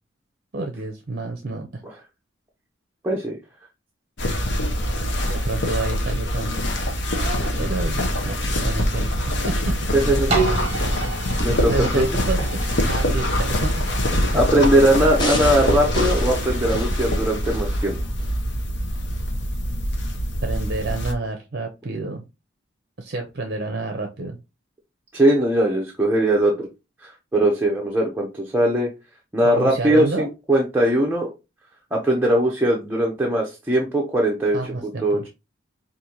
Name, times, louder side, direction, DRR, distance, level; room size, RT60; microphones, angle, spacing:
voice 1, 0.5-1.7 5.3-6.6 7.1-9.0 9.4-9.9 11.7-12.6 12.9-13.9 14.1-14.4 20.4-22.2 23.0-24.4 29.4-30.3 34.5-35.2, right 3 dB, 50° right, 3 dB, 0.6 m, -29 dB
voice 2, 3.0-3.4 9.9-10.3 11.4-12.2 14.3-18.0 25.1-26.7 27.0-28.9 29.3-31.3 31.9-35.3, right 1 dB, 10° right, -2 dB, 0.6 m, -20 dB
sound 1, 4.2-21.1, equal, 60° left, 0.8 m, -24 dB
sound 2, 10.3-16.0 16.6-16.7, right 3 dB, 30° right, 0.9 m, -30 dB
sound 3, 15.2-17.7 18.2-18.3, left 1 dB, 20° left, 0.9 m, -29 dB
5.1 x 2.5 x 2.9 m, 0.26 s
head